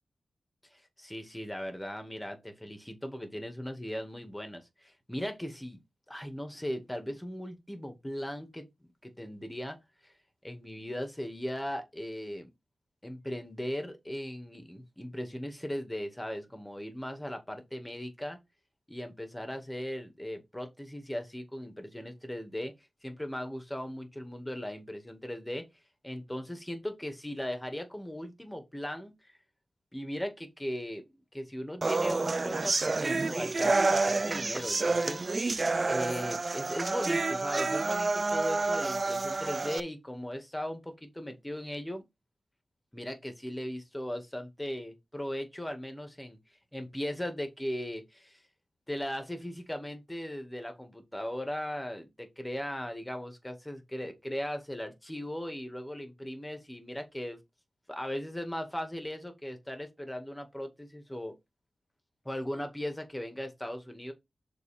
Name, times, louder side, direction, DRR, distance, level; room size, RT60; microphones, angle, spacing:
voice 1, 0.7-5.8 6.1-8.7 9.0-9.8 10.0-10.1 10.4-12.5 13.0-18.4 18.9-22.7 23.0-25.6 26.0-29.1 29.9-31.0 31.3-35.5 35.9-42.0 42.9-46.4 46.7-48.4 48.9-57.4 57.9-61.3 62.3-64.1, equal, 10° left, 1.9 m, -38 dB
sound 1, 31.8-39.8, right 3 dB, 40° right, 0.3 m, -29 dB
6.9 x 4.1 x 4.3 m
wide cardioid pair, 80°, 0 cm